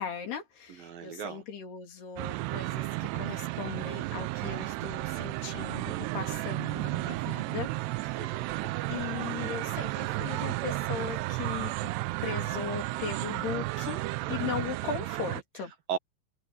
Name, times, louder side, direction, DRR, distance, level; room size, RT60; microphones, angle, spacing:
voice 1, 0.0-7.7 8.0-8.3 8.9-11.9 12.2-14.0 14.3-15.7, left 7 dB, 70° left, 5.5 m, -38 dB
voice 2, 0.8-1.4 5.9-6.5 8.2-8.7 14.4-14.5 15.9-16.0, right 8 dB, 65° right, 3.0 m, -38 dB
sound 1, 2.2-15.4, right 20 dB, 85° right, 2.7 m, -33 dB
omnidirectional pair, 4.9 m